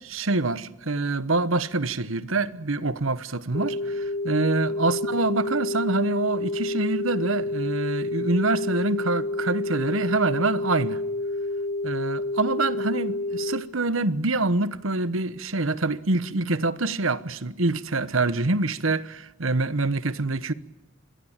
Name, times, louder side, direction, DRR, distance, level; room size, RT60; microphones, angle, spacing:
voice 1, 0.1-11.0 11.8-20.5, right 2 dB, 85° right, 1.2 m, -25 dB
sound 1, 3.5-13.6, left 2 dB, 45° left, 3.2 m, -29 dB
27.0 x 21.5 x 9.0 m
head